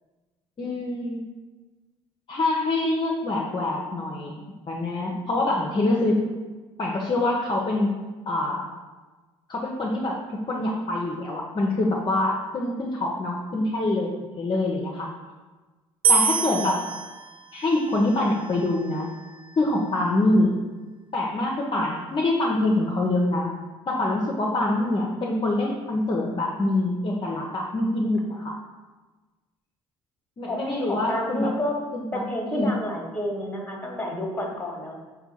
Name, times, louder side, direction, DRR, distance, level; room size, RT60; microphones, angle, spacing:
voice 1, 0.6-1.2 2.3-6.2 6.8-7.9 8.3-8.6 9.5-15.1 16.1-16.8 17.5-19.1 19.6-20.6 21.1-23.5 23.9-28.6 30.4-31.5 31.9-32.7, left 2 dB, 35° left, -2 dB, 0.6 m, -25 dB
sound 1, 16.0-19.3, right 5 dB, 35° right, 0.3 m, -27 dB
voice 2, 30.5-31.8 32.1-35.0, left 1 dB, 10° left, 0 dB, 1.1 m, -30 dB
4.4 x 2.2 x 4.2 m, 1.3 s
hypercardioid pair, 55°, 15 cm